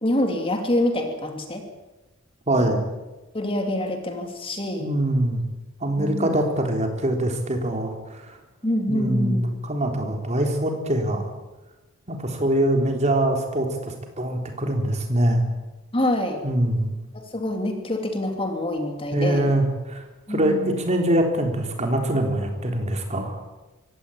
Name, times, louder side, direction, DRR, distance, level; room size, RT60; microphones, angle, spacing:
voice 1, 0.0-1.6 2.6-2.7 3.3-4.9 6.0-6.3 8.6-9.5 15.9-16.4 17.1-19.5 20.3-20.8, left 1 dB, 25° left, 4 dB, 3.1 m, -26 dB
voice 2, 2.5-2.8 4.8-5.4 5.8-8.4 8.9-11.3 12.1-15.4 16.4-16.9 19.1-20.0 20.3-23.4, right 1 dB, 30° right, 3 dB, 3.8 m, -23 dB
23.5 x 17.0 x 8.7 m, 1.1 s
head